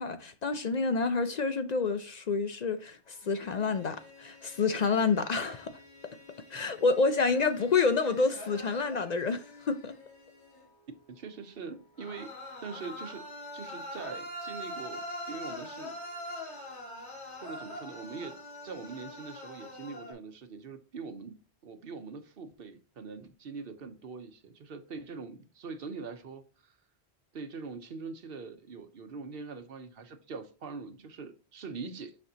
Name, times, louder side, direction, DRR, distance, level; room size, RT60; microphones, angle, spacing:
voice 1, 0.0-5.7 6.5-10.0, left 4 dB, 55° left, 0.5 m, -28 dB
sound 1, 3.2-10.7 12.0-20.1, left 1 dB, 85° left, 2.4 m, -44 dB
voice 2, 11.1-12.3 12.6-13.2 13.5-16.0 16.4-16.8 17.4-18.4 18.6-21.3 21.6-26.7 27.3-32.2, right 4 dB, 60° right, 1.0 m, -43 dB
6.6 x 5.3 x 2.8 m
omnidirectional pair, 1.1 m